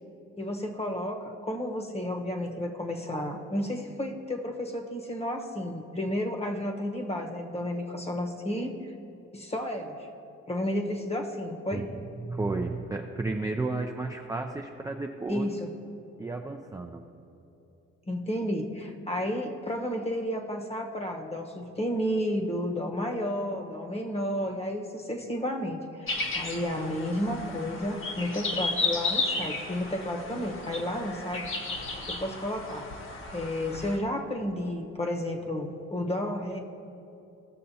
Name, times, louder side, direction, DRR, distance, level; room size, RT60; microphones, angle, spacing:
voice 1, 0.4-8.7 9.3-10.1 10.5-11.8 15.3-15.7 18.1-31.5 31.8-32.9 33.3-36.6, left 1 dB, 20° left, 3 dB, 1.0 m, -32 dB
voice 2, 11.7-15.5 16.2-17.0, right 3 dB, 10° right, 2 dB, 0.4 m, -33 dB
sound 1, 26.1-34.0, left 3 dB, 40° left, 1.1 m, -33 dB
15.5 x 6.5 x 2.8 m, 2.8 s
cardioid pair, 90°, 30 cm